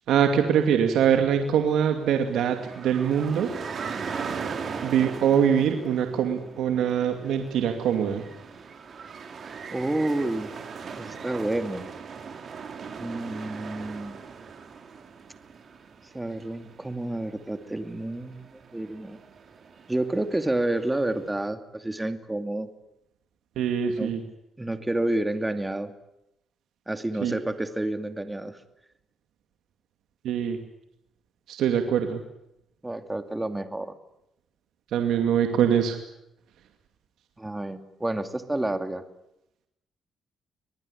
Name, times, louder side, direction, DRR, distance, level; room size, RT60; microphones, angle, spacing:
voice 1, 0.1-3.5 4.8-8.2 23.6-24.2 27.2-27.4 30.2-30.6 31.5-32.2 34.9-36.0, right 8 dB, 80° right, 5 dB, 2.4 m, -23 dB
sound 1, 1.4-21.3, right 5 dB, 50° right, 4.0 m, -40 dB
voice 2, 9.7-10.5 11.0-11.9 13.0-14.2 16.1-19.2 19.9-22.7 24.0-24.1 24.6-25.9 26.9-28.6 32.8-34.0 37.4-39.0, right 1 dB, 10° right, 8 dB, 2.5 m, -29 dB
25.0 x 20.0 x 9.9 m, 0.85 s
cardioid pair, 90°, 0 cm